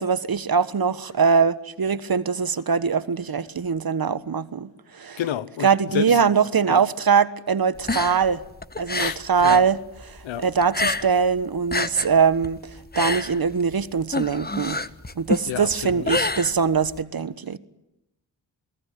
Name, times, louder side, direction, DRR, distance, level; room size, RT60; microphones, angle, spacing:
voice 1, 0.0-5.2 5.6-8.4 8.8-9.8 10.1-14.8 15.2-17.6, right 6 dB, 50° right, 1.4 m, -22 dB
voice 2, 5.2-6.3 6.7-6.8 8.9-9.6 10.2-10.5 15.5-16.0, left 10 dB, 90° left, 1.1 m, -30 dB
sound 1, 7.8-9.7 10.0-11.3 11.6-17.0, left 3 dB, 20° left, 1.5 m, -28 dB
28.0 x 20.5 x 9.4 m
supercardioid pair, 40°, 44 cm